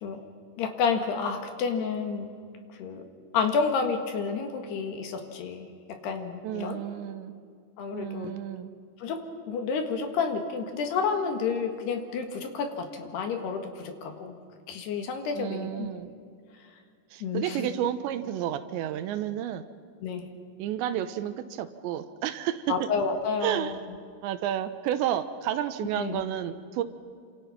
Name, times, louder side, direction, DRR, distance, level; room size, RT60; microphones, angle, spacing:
voice 1, 0.6-2.3 2.8-3.1 3.3-6.8 7.8-8.3 9.0-14.4 14.7-15.9 17.2-17.7 20.0-20.3 22.7-23.8 26.0-26.2, left 5 dB, 65° left, 5 dB, 3.6 m, -30 dB
voice 2, 6.4-7.3 7.9-8.7 15.4-16.1 17.1-19.6 20.6-22.7 23.4-23.7 24.2-26.8, right 11 dB, 80° right, 10 dB, 3.0 m, -31 dB
28.0 x 26.0 x 5.9 m, 2.2 s
omnidirectional pair, 5.3 m